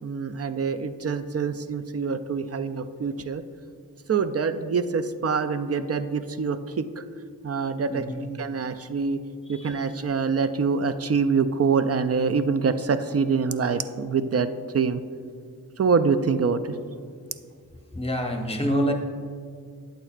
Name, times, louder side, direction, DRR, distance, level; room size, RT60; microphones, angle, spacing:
voice 1, 0.0-3.4 4.1-7.0 7.4-8.0 8.4-9.2 9.5-15.0 15.8-16.8, right 5 dB, 45° right, 11 dB, 0.4 m, -25 dB
voice 2, 7.9-8.3 9.5-9.7 17.9-18.9, equal, 15° left, 2 dB, 0.9 m, -27 dB
8.5 x 7.9 x 2.4 m, 2.1 s
wide cardioid pair, 45°, 35 cm